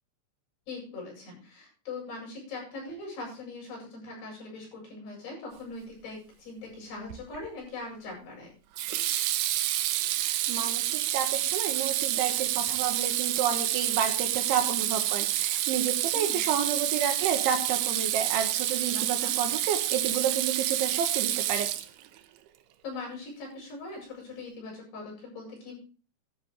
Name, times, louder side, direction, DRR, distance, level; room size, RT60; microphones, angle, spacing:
voice 1, 0.7-8.5 16.1-16.4 18.9-19.3 22.8-25.8, left 3 dB, 50° left, -2 dB, 9.9 m, -41 dB
Water tap faucet / Sink (filling or washing), 7.1-7.5 8.8-22.2, right 13 dB, 85° right, 2.2 m, -28 dB
voice 2, 10.1-21.7, right 8 dB, 70° right, 5 dB, 3.7 m, -30 dB
14.0 x 12.5 x 3.3 m, 0.37 s
omnidirectional pair, 5.9 m